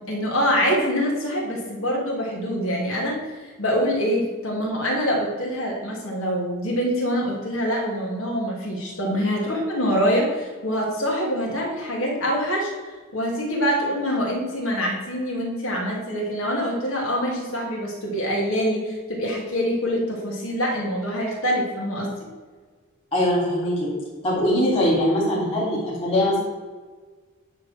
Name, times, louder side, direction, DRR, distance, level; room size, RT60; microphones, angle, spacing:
voice 1, 0.0-12.7 13.1-22.1, equal, 70° left, -2 dB, 2.7 m, -25 dB
voice 2, 23.1-23.9 24.2-26.4, left 1 dB, 25° left, -6 dB, 2.9 m, -21 dB
10.5 x 4.0 x 7.3 m, 1.4 s
head